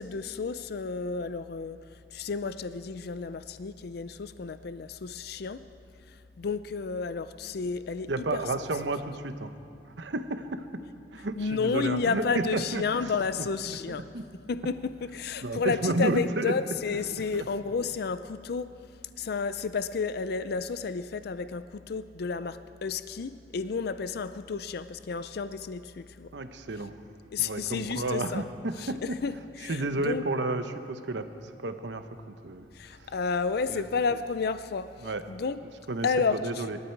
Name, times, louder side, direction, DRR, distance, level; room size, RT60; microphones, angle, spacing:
voice 1, 0.0-5.6 6.1-8.4 11.4-14.0 14.5-18.7 19.2-26.3 27.3-28.4 28.8-30.2 32.7-35.6 36.0-36.6, left 5 dB, 60° left, 12 dB, 0.5 m, -31 dB
voice 2, 8.1-9.5 10.0-10.8 11.1-13.1 13.6-13.8 14.1-14.2 15.4-16.5 17.3-17.4 26.3-26.9 27.4-29.0 29.7-32.7 33.0-33.1 33.7-33.8 35.0-35.2 35.9-36.1 36.4-36.8, right 2 dB, 85° right, 9 dB, 0.9 m, -31 dB
25.0 x 12.5 x 4.6 m, 2.6 s
head